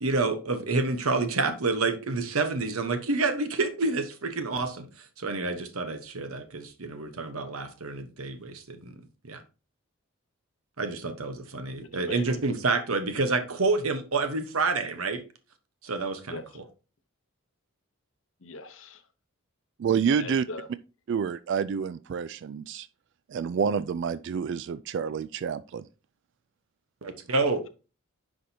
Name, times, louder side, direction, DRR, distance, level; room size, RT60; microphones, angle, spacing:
voice 1, 0.0-4.9 5.2-8.9 9.2-9.4 10.8-15.2 15.8-16.6 27.0-27.6, right 3 dB, 80° right, 1.1 m, -28 dB
voice 2, 11.8-12.4 16.3-16.4 18.4-19.0 20.2-20.7, left 3 dB, 65° left, 0.8 m, -40 dB
voice 3, 19.8-20.4 21.1-22.9 23.3-25.9, right 6 dB, 55° right, 0.3 m, -28 dB
10.0 x 5.0 x 2.8 m
head